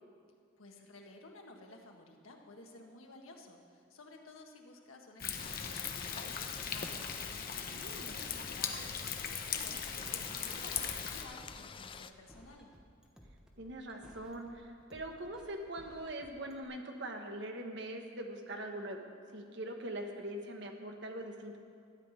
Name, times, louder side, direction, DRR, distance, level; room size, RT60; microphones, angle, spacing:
voice 1, 0.6-12.7, left 2 dB, 85° left, 2 dB, 1.5 m, -54 dB
Thunder, 5.2-11.2, left 7 dB, 45° left, 0.9 m, -39 dB
sound 1, 5.4-12.1, left 6 dB, 25° left, 0.3 m, -49 dB
voice 2, 7.7-8.1 13.6-19.0 19.3-21.6, right 1 dB, 55° right, 3 dB, 1.3 m, -42 dB
sound 2, 9.7-16.6, equal, 5° right, 1.1 m, -59 dB
13.0 x 5.9 x 9.5 m, 2.3 s
head